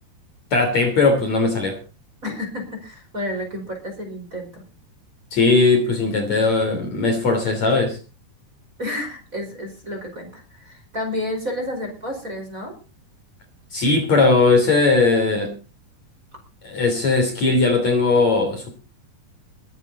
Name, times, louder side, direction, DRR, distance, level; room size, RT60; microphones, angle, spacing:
voice 1, 0.5-1.8 5.3-8.0 13.7-15.5 16.6-18.7, left 3 dB, 40° left, 5 dB, 4.0 m, -18 dB
voice 2, 2.2-4.6 8.8-12.7, left 1 dB, 20° right, 2 dB, 4.8 m, -30 dB
22.0 x 10.0 x 4.2 m, 0.33 s
omnidirectional pair, 5.0 m